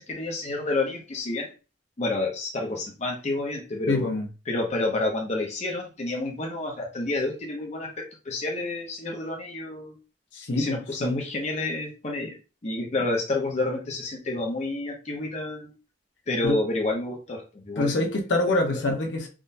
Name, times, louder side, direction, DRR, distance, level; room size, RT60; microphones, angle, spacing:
voice 1, 0.0-1.5 2.0-4.1 4.5-10.0 10.5-12.4 12.6-15.7 16.3-18.0 18.7-18.8, left 2 dB, 40° left, 0 dB, 0.6 m, -29 dB
voice 2, 3.9-4.2 10.3-11.2 16.4-16.6 17.8-19.3, left 2 dB, 90° left, 1 dB, 0.9 m, -25 dB
3.6 x 2.2 x 2.6 m, 0.32 s
head